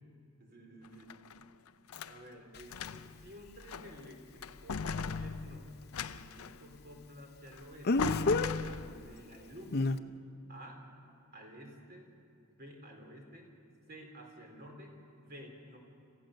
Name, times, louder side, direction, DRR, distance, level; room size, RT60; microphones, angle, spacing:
voice 1, 0.4-1.1 2.0-9.9 10.5-10.8 11.3-12.1 12.5-13.5 13.9-15.8, equal, 45° right, 2 dB, 3.7 m, -52 dB
sound 1, 0.8-2.2 2.6-3.2 3.6-4.1 4.4-6.6 7.5-7.6 8.0-9.2, left 5 dB, 90° left, 0.6 m, -38 dB
Speech, 2.5-2.6 7.8-8.5 9.7-10.0, left 2 dB, 50° left, 0.7 m, -28 dB
27.5 x 15.0 x 6.5 m, 2.6 s
head